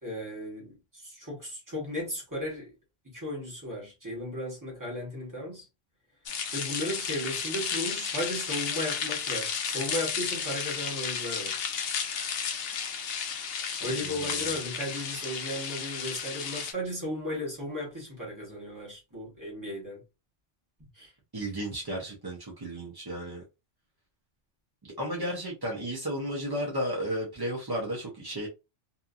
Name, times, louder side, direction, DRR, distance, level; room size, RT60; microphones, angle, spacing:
voice 1, 0.0-2.8 3.0-5.7 6.5-11.6 12.3-12.4 13.8-20.0 20.9-21.1, left 1 dB, 15° right, 1.1 m, -35 dB
sound 1, 6.3-16.7, left 7 dB, 65° left, 0.7 m, -33 dB
voice 2, 13.8-14.2 21.3-23.4 24.8-28.5, equal, 35° right, 0.4 m, -33 dB
2.8 x 2.5 x 2.4 m
omnidirectional pair, 1.3 m